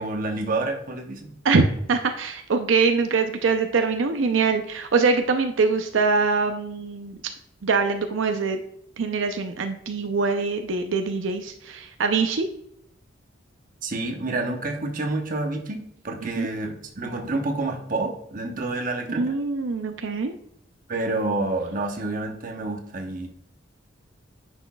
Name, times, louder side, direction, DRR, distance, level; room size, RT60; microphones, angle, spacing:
voice 1, 0.0-1.3 13.8-19.3 20.9-23.3, right 2 dB, 45° right, 3 dB, 0.9 m, -28 dB
voice 2, 1.4-7.2 7.6-8.6 9.0-12.5 16.4-16.5 19.2-20.3, right 4 dB, 85° right, 6 dB, 0.5 m, -23 dB
9.7 x 6.2 x 2.3 m, 0.72 s
head